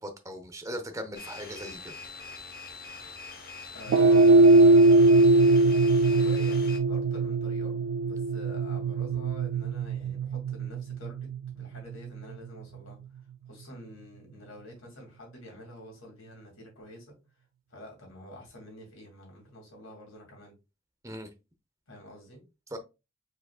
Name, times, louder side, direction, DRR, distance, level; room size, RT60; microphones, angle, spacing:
voice 1, 0.0-1.9 21.0-21.3 22.7-22.8, equal, 15° right, 0.7 m, -39 dB
sound 1, 1.1-6.8, left 4 dB, 45° left, 1.0 m, -43 dB
voice 2, 3.7-5.3 6.1-7.8 8.0-11.3 11.5-13.0 13.4-17.1 17.7-20.5 21.9-22.4, equal, 80° left, 2.4 m, -47 dB
sound 2, 3.9-12.4, right 2 dB, 80° right, 0.3 m, -21 dB
4.8 x 4.0 x 2.3 m
head